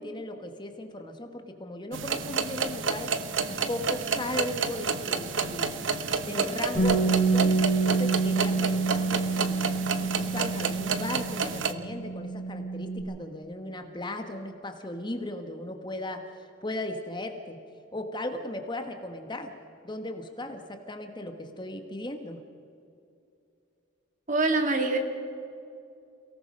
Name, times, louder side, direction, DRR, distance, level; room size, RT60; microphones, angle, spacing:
voice 1, 0.0-3.1 3.5-5.9 6.3-7.5 7.8-9.6 10.0-17.6 17.9-19.5 19.8-22.4, left 1 dB, 25° left, 5 dB, 1.2 m, -37 dB
sound 1, 1.9-11.7, right 5 dB, 70° right, 1.1 m, -30 dB
Bass guitar, 6.7-13.0, right 4 dB, ahead, 5.7 m, -27 dB
voice 2, 24.3-25.0, right 3 dB, 40° right, 4 dB, 2.2 m, -24 dB
29.0 x 18.0 x 5.4 m, 2.6 s
head